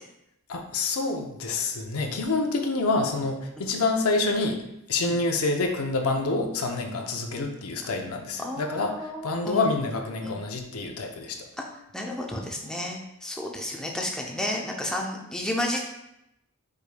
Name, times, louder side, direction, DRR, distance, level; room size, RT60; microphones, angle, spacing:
voice 1, 0.5-11.5, left 3 dB, 85° left, 3 dB, 0.6 m, -27 dB
voice 2, 8.4-9.6 10.2-10.3 11.6-11.7 11.9-15.9, left 1 dB, 5° left, 0 dB, 0.5 m, -32 dB
5.2 x 4.6 x 2.2 m, 0.84 s
head